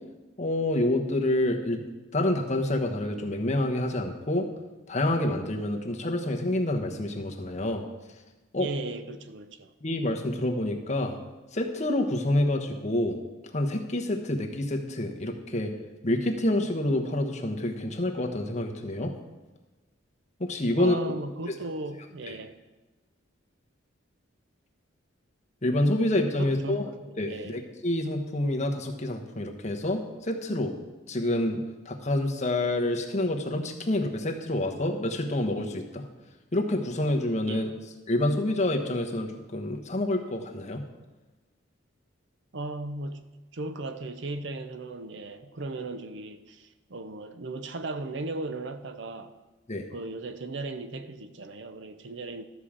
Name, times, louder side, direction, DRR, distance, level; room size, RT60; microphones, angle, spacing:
voice 1, 0.4-1.8 2.1-4.5 4.9-7.8 8.5-8.7 9.8-11.2 11.5-13.2 13.5-15.7 16.0-19.1 20.4-21.1 25.6-26.9 27.2-30.7 31.1-36.1 36.5-37.7 38.1-40.8 49.7-49.9, left 1 dB, 35° left, 1.1 m, -27 dB
voice 2, 8.6-9.7 20.8-22.6 26.4-27.6 37.5-37.7 42.5-43.3 43.5-49.3 49.9-52.4, right 2 dB, 60° right, 0.7 m, -36 dB
12.5 x 5.0 x 7.3 m
head